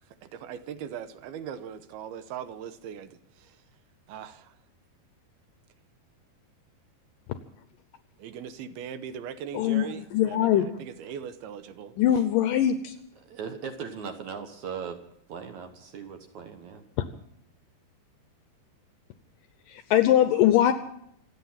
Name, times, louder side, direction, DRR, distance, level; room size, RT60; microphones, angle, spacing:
voice 1, 0.0-3.6 4.1-4.6 8.2-12.0, right 8 dB, 80° right, 11 dB, 2.7 m, -40 dB
voice 2, 9.5-10.7 12.0-13.0 17.0-17.1 19.7-20.7, left 11 dB, 75° left, 10 dB, 2.1 m, -22 dB
voice 3, 13.2-15.0 15.3-16.8, right 6 dB, 60° right, 6 dB, 2.2 m, -38 dB
27.0 x 9.3 x 5.7 m, 0.71 s
omnidirectional pair, 4.6 m